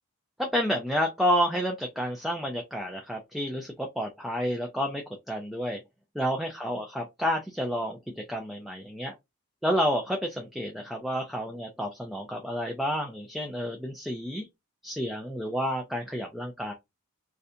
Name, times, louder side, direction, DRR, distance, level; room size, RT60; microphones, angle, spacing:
voice 1, 0.4-5.0 5.3-5.8 6.2-9.1 9.6-14.5 14.8-16.7, equal, ahead, 0.3 m, -30 dB
3.2 x 2.6 x 2.5 m
head